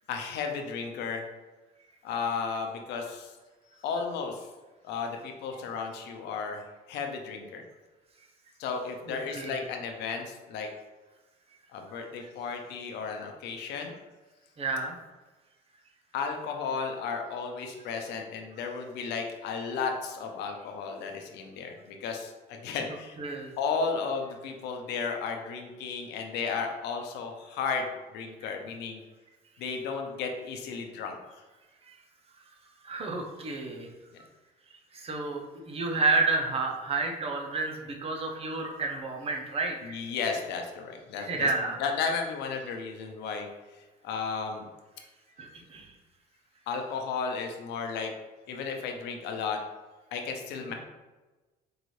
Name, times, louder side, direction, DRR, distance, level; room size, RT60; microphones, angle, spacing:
voice 1, 0.1-1.3 2.0-3.3 3.8-4.5 4.8-7.6 8.6-10.7 11.7-13.9 16.1-23.2 23.6-29.0 29.6-31.2 39.8-41.5 41.8-43.5 44.0-44.7 46.7-48.1 48.5-49.6 50.1-50.7, left 5 dB, 85° left, 4 dB, 0.6 m, -34 dB
voice 2, 9.1-9.6 12.2-12.3 14.6-15.0 23.2-23.5 28.4-28.5 31.8-31.9 32.8-33.9 34.2-34.3 34.9-40.0 41.2-41.8 45.4-45.9 50.7-50.8, right 3 dB, 35° right, 2 dB, 0.7 m, -31 dB
4.7 x 2.6 x 3.1 m, 1.2 s
cardioid pair, 110°, 17 cm